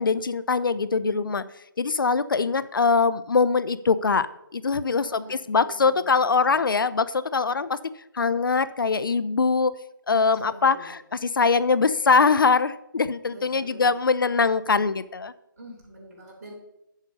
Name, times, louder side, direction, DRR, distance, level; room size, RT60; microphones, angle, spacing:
voice 1, 0.0-1.4 1.8-4.3 4.5-7.8 8.1-9.8 10.1-15.3, left 4 dB, 70° left, 16 dB, 0.6 m, -22 dB
voice 2, 4.8-6.6 10.1-10.9 13.3-13.9 15.6-16.6, right 1 dB, 40° right, -2 dB, 3.9 m, -44 dB
8.4 x 7.3 x 5.2 m, 0.85 s
hypercardioid pair, 165°, 12 cm